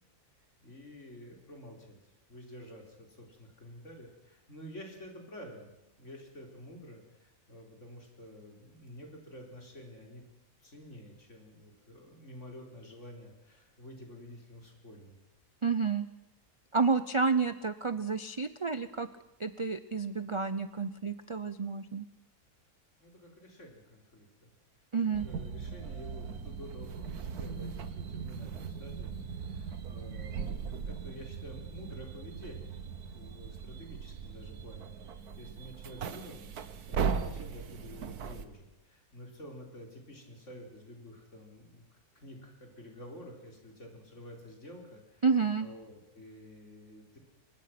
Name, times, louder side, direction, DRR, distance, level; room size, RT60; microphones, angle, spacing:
voice 1, 0.6-10.2 10.6-15.2 23.0-24.5 25.0-32.7 33.1-41.8 42.1-45.3 45.6-47.2, equal, 50° left, 2 dB, 4.4 m, -50 dB
voice 2, 15.6-16.1 16.7-19.1 19.4-22.1 24.9-25.3 45.2-45.7, right 5 dB, 35° right, 12 dB, 0.5 m, -30 dB
sound 1, 25.1-38.4, right 6 dB, 85° right, 1.6 m, -39 dB
23.5 x 21.0 x 5.9 m, 0.94 s
omnidirectional pair, 1.6 m